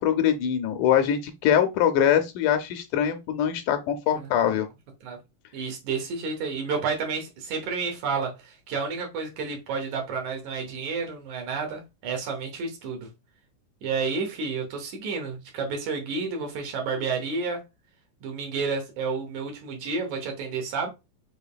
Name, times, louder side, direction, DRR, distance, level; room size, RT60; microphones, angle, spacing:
voice 1, 0.0-4.7, left 9 dB, 80° left, 1.9 m, -23 dB
voice 2, 4.1-4.6 5.0-5.2 5.5-13.1 13.8-17.6 18.2-20.9, right 4 dB, 70° right, 2.3 m, -30 dB
5.6 x 3.5 x 2.2 m
omnidirectional pair, 3.8 m